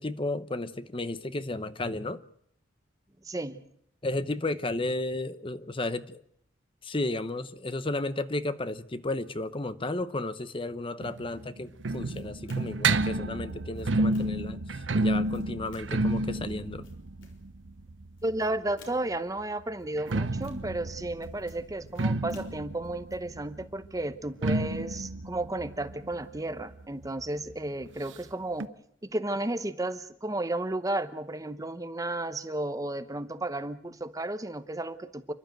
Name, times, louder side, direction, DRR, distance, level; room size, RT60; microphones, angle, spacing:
voice 1, 0.0-2.2 4.0-6.2 6.8-16.9, left 2 dB, 25° left, 0.9 m, -33 dB
voice 2, 3.2-3.6 18.2-28.7 29.0-35.3, right 2 dB, 20° right, 0.9 m, -33 dB
sound 1, 11.0-18.7 19.8-27.2 27.5-27.6 27.8-27.9 28.6-28.7, right 2 dB, 70° right, 0.8 m, -31 dB
sound 2, 12.1-12.9 13.5-14.5 15.1-16.1 16.6-17.5 18.2-19.2 19.8-20.8 21.1-23.2, left 3 dB, 75° left, 4.0 m, -56 dB
29.0 x 12.0 x 9.1 m
head